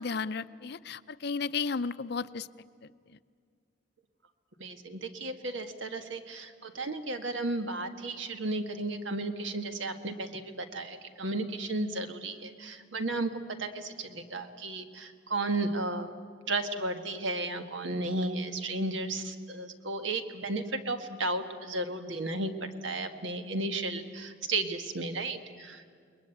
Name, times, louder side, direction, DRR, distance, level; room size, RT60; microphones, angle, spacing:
voice 1, 0.0-2.5, left 5 dB, 60° left, 14 dB, 0.6 m, -33 dB
voice 2, 4.6-16.1 16.5-25.9, right 2 dB, 80° right, 7 dB, 1.7 m, -34 dB
29.5 x 21.0 x 9.1 m, 2.2 s
head